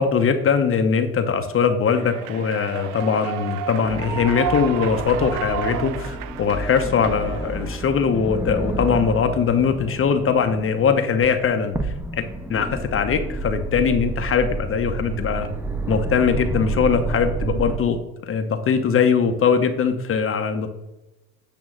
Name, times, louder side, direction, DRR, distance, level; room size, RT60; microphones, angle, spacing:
voice 1, 0.0-12.2 12.5-15.5 15.9-18.0 18.3-20.7, left 6 dB, 30° left, 7 dB, 0.8 m, -21 dB
Human voice / Clapping / Cheering, 1.9-7.9, right 9 dB, 50° right, 0.5 m, -32 dB
sound 1, 3.8-17.8, right 2 dB, 5° right, 0.7 m, -30 dB
8.5 x 2.9 x 6.2 m, 1.0 s
hypercardioid pair, 85°, 43 cm